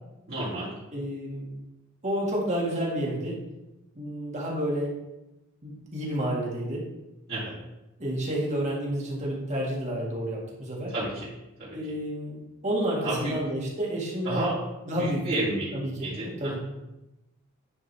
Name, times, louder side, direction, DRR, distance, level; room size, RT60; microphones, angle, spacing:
voice 1, 0.3-0.7 7.3-7.5 10.9-11.3 11.6-11.8 13.0-13.3 14.2-14.5 14.9-15.7 16.0-16.6, right 1 dB, 50° right, -11 dB, 3.0 m, -31 dB
voice 2, 0.9-1.5 2.0-3.4 4.0-4.9 5.6-6.9 8.0-10.9 11.7-12.4 12.6-14.5 14.9-15.4 15.7-16.1 16.4-16.6, right 1 dB, 35° right, -3 dB, 2.0 m, -30 dB
9.9 x 5.1 x 3.5 m, 0.96 s
head